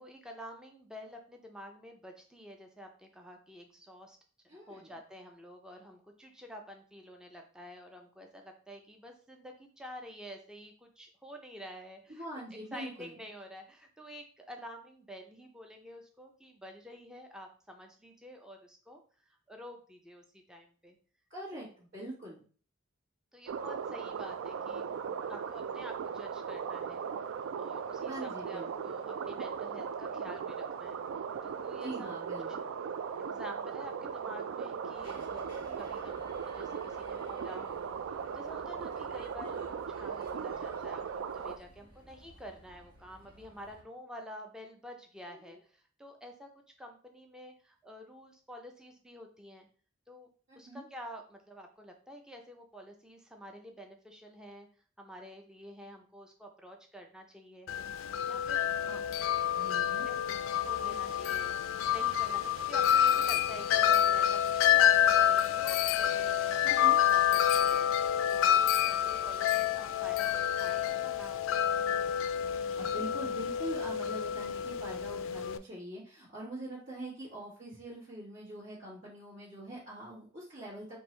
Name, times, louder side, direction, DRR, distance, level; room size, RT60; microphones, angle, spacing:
voice 1, 0.0-4.2 4.4-12.2 12.7-19.0 19.3-21.0 21.5-21.6 23.3-24.9 25.3-27.1 27.5-31.0 31.4-32.1 33.2-46.5 46.8-49.7 50.1-50.3 50.6-54.7 55.0-57.7 58.3-58.6 60.1-61.5 61.8-67.2 67.5-71.6, equal, 5° right, 2 dB, 0.4 m, -49 dB
voice 2, 4.5-4.9 12.1-13.1 21.3-22.4 28.0-28.9 31.8-32.7 41.8-41.9 45.3-45.6 50.5-50.8 58.8-59.0 59.6-60.1 60.8-60.9 66.6-67.0 72.5-81.0, right 1 dB, 65° right, -9 dB, 1.6 m, -44 dB
sound 1, 23.5-41.6, right 6 dB, 80° right, 0.3 m, -38 dB
sound 2, 34.9-43.8, equal, 50° right, 1.3 m, -55 dB
Wind chime, 57.7-75.6, left 10 dB, 85° left, 0.3 m, -28 dB
4.5 x 2.6 x 3.1 m, 0.41 s
head